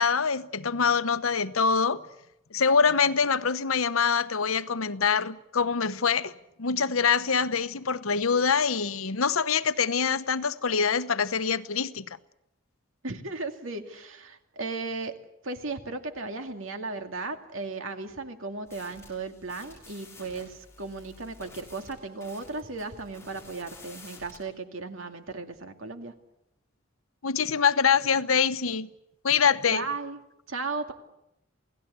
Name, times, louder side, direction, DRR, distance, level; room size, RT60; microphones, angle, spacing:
voice 1, 0.0-2.0 2.5-6.3 6.6-12.0 27.2-28.9 29.2-29.9, left 6 dB, 90° left, 1.0 m, -24 dB
voice 2, 13.0-15.1 15.4-26.1 29.7-30.2 30.5-30.9, right 3 dB, 70° right, 2.4 m, -36 dB
sound 1, 18.7-24.4, left 3 dB, 15° left, 6.4 m, -51 dB
28.5 x 17.5 x 8.2 m
head